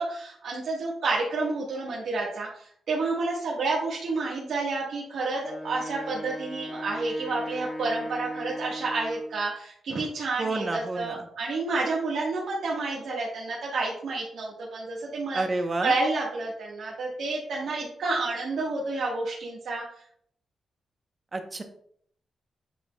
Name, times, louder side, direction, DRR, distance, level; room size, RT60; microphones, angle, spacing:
voice 1, 0.0-15.4 15.8-19.8, right 3 dB, 80° right, -5 dB, 1.3 m, -30 dB
Wind instrument woodwind instrument, 5.4-9.4, left 1 dB, 10° left, 1.0 m, -38 dB
voice 2, 10.4-11.2 15.3-15.9 21.3-21.6, right 2 dB, 30° right, 6 dB, 0.8 m, -29 dB
8.5 x 5.2 x 2.2 m, 0.65 s
wide cardioid pair, 140°, 0 cm